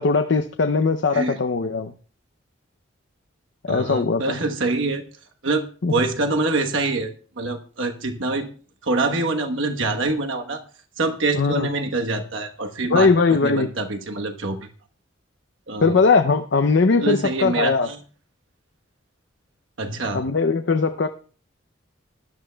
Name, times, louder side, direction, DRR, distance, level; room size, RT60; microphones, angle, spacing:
voice 1, 0.0-1.9 3.6-4.4 5.8-5.9 11.3-11.7 12.9-13.7 15.8-17.9 20.1-21.1, left 4 dB, 60° left, 8 dB, 0.5 m, -20 dB
voice 2, 3.7-5.0 5.4-5.6 5.9-8.5 8.8-10.6 11.0-14.7 15.7-16.0 17.0-18.0 19.8-20.2, right 3 dB, 75° right, 4 dB, 1.1 m, -25 dB
19.5 x 11.5 x 2.2 m, 0.40 s
head